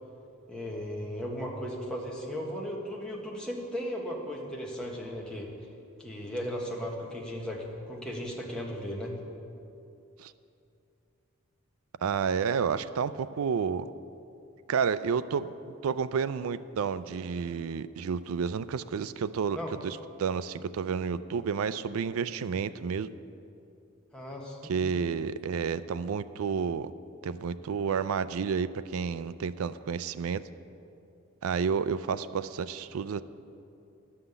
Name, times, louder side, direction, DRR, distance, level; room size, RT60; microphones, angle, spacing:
voice 1, 0.5-5.5 6.0-9.1 19.5-19.7 24.1-24.7, equal, 5° left, -3 dB, 1.3 m, -36 dB
voice 2, 12.0-13.9 14.7-15.5 15.8-19.6 19.8-23.1 24.7-26.9 27.2-30.4 31.4-33.2, right 6 dB, 80° right, 14 dB, 0.4 m, -30 dB
11.5 x 5.7 x 8.0 m, 2.7 s
head